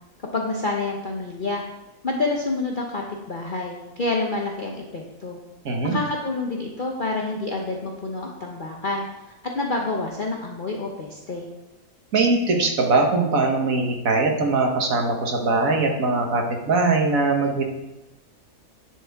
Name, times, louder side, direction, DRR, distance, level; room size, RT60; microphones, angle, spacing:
voice 1, 0.3-1.6 2.0-5.4 5.8-9.1 9.5-11.4, left 3 dB, 40° left, 0 dB, 0.9 m, -28 dB
voice 2, 5.6-6.0 12.1-17.6, right 3 dB, 60° right, 2 dB, 1.6 m, -21 dB
11.0 x 6.3 x 3.5 m, 0.99 s
omnidirectional pair, 1.6 m